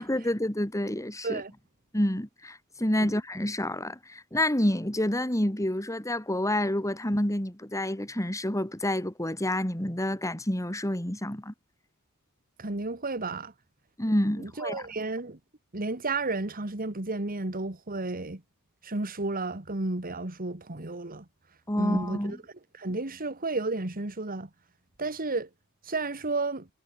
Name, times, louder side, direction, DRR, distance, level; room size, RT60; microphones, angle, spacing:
voice 1, 0.0-1.4 1.9-11.5 14.0-14.8 21.7-22.4, left 1 dB, 15° left, 3.5 m, -28 dB
voice 2, 12.6-13.5 14.4-15.4 15.7-18.4 18.8-21.2 21.8-22.4 22.8-24.5 25.0-25.5 25.8-26.7, right 2 dB, 40° right, 2.1 m, -32 dB
head